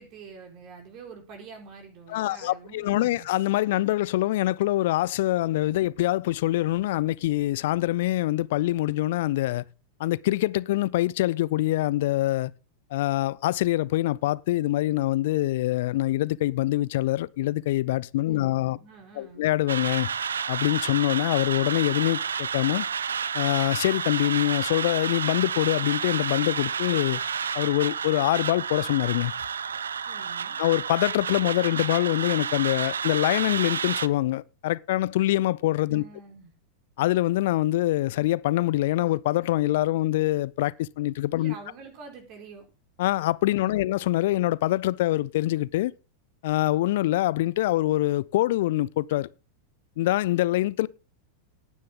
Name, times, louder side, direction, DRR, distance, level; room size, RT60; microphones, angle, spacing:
voice 1, 0.0-3.3 18.3-19.5 30.1-30.6 35.9-36.5 41.3-42.7 43.6-43.9, right 5 dB, 40° right, 4.5 m, -46 dB
voice 2, 2.1-9.6 10.0-12.5 12.9-18.8 19.2-20.1 20.5-22.9 23.3-27.2 27.5-29.3 30.6-36.0 37.0-41.5 43.0-45.9 46.4-49.3 50.0-50.9, left 16 dB, 55° left, 0.6 m, -24 dB
sound 1, 19.7-34.1, right 7 dB, 70° right, 0.5 m, -30 dB
17.5 x 9.6 x 3.8 m
figure-of-eight pair, 90°, 0 cm